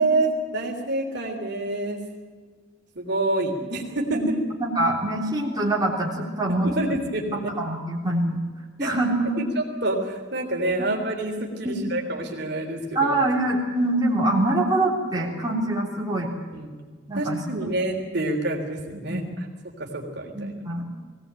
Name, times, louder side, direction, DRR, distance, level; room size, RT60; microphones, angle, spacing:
voice 1, 0.0-2.0 3.0-4.4 6.5-7.5 8.8-8.9 9.4-13.2 16.5-16.7 17.1-19.5 19.8-20.5, right 2 dB, 60° right, 1 dB, 3.6 m, -27 dB
voice 2, 4.6-6.7 7.6-8.4 8.8-9.4 10.8-10.9 11.8-11.9 13.0-16.3 17.1-17.7 19.1-19.3 20.3-20.8, right 1 dB, 20° right, -3 dB, 3.6 m, -24 dB
22.0 x 17.5 x 9.1 m, 1.5 s
head